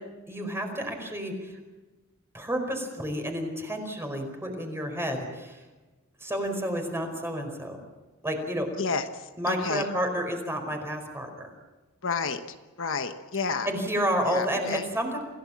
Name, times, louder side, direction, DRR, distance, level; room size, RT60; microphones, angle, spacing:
voice 1, 0.3-1.5 2.3-5.6 6.2-7.8 8.2-8.7 9.4-11.5 13.6-15.2, equal, 10° right, 4 dB, 4.8 m, -30 dB
voice 2, 8.8-9.9 12.0-13.7 14.2-14.8, left 5 dB, 65° left, 7 dB, 1.2 m, -31 dB
27.5 x 17.0 x 7.4 m, 1.2 s
head